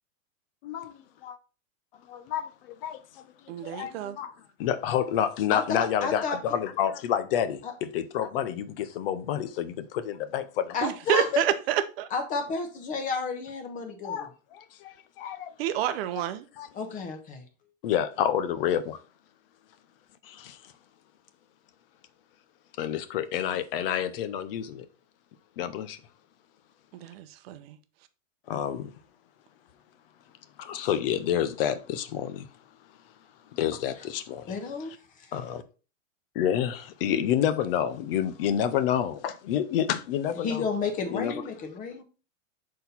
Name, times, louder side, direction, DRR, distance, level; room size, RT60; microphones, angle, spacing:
voice 1, 0.6-1.4 2.1-3.0 3.6-4.3 4.6-9.7 10.1-10.4 14.0-15.5 16.6-16.7 17.8-19.0 20.2-20.6 22.8-24.9 25.6-26.0 28.5-28.9 30.6-32.5 33.5-34.5 35.3-35.6 36.4-40.7 41.1-41.4, left 10 dB, 45° left, 0.6 m, -29 dB
voice 2, 3.5-4.2 10.8-12.1 15.6-16.5 27.0-27.8, right 11 dB, 50° right, 0.8 m, -28 dB
voice 3, 5.5-6.4 7.6-7.7 10.7-11.4 12.1-14.3 16.7-17.4 34.5-34.9 40.4-42.0, left 5 dB, 20° left, 1.1 m, -31 dB
6.3 x 4.3 x 4.1 m
supercardioid pair, 155°, 40 cm